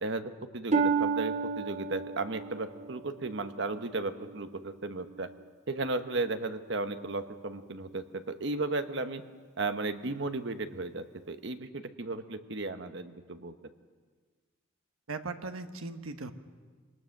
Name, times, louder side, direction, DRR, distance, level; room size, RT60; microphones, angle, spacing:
voice 1, 0.0-5.3 5.7-9.2 9.6-13.5, right 3 dB, 60° right, 9 dB, 1.1 m, -35 dB
Harp, 0.7-4.5 5.0-5.4 6.0-6.2, right 5 dB, 35° right, 0.6 m, -32 dB
voice 2, 15.1-16.3, right 3 dB, 85° right, 8 dB, 1.3 m, -38 dB
24.0 x 19.0 x 6.5 m, 1.5 s
head